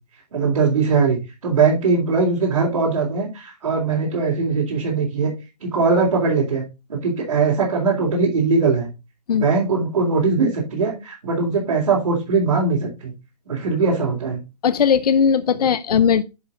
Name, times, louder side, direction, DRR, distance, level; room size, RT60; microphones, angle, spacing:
voice 1, 0.3-5.3 5.6-6.6 6.9-8.9 9.3-13.1 13.5-14.4, right 4 dB, 65° right, 3.8 m, -20 dB
voice 2, 14.6-16.2, left 7 dB, 65° left, 0.6 m, -18 dB
11.0 x 5.1 x 3.9 m
hypercardioid pair, 180°, 21 cm